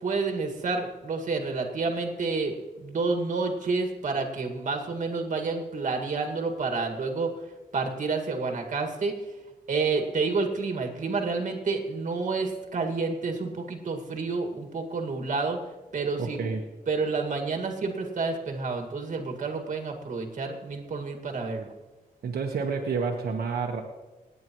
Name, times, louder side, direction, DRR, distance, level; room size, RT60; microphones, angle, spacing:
voice 1, 0.0-7.3 7.7-9.1 9.7-15.6 15.9-16.5 16.9-21.7, right 4 dB, 50° right, 4 dB, 2.0 m, -29 dB
voice 2, 16.2-16.6 22.2-23.8, right 5 dB, 75° right, 0 dB, 1.3 m, -29 dB
28.0 x 9.4 x 3.1 m, 1.1 s
wide cardioid pair, 125°, 16 cm